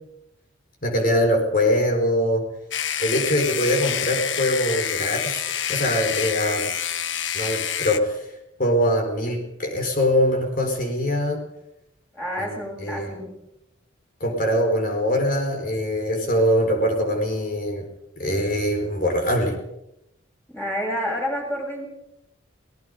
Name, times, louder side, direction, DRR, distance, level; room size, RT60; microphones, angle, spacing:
voice 1, 0.8-2.4 3.0-6.7 7.3-8.2 8.6-11.4 12.8-13.1 14.2-17.9 18.2-19.5, equal, 45° left, 3 dB, 4.6 m, -23 dB
sound 1, 2.7-8.0, left 9 dB, 65° left, 1.3 m, -27 dB
voice 2, 12.1-13.4 20.5-21.9, equal, 10° left, -1 dB, 6.9 m, -29 dB
26.0 x 19.0 x 5.4 m, 0.84 s
head